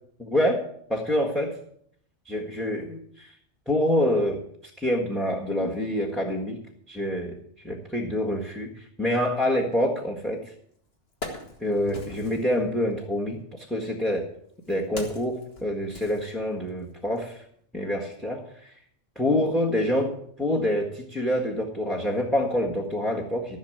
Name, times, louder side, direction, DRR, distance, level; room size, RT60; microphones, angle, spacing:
voice 1, 0.2-1.5 2.2-3.3 3.7-4.4 4.8-6.6 6.9-7.4 7.6-10.5 11.6-14.3 14.7-17.4 17.7-18.7 19.1-20.1 20.4-23.6, left 1 dB, ahead, 2 dB, 1.6 m, -26 dB
Wood, 10.4-10.5 10.9-12.5 13.5-16.8 17.2-17.3, left 2 dB, 55° left, 2.1 m, -41 dB
15.0 x 6.6 x 7.9 m, 0.65 s
omnidirectional pair, 1.3 m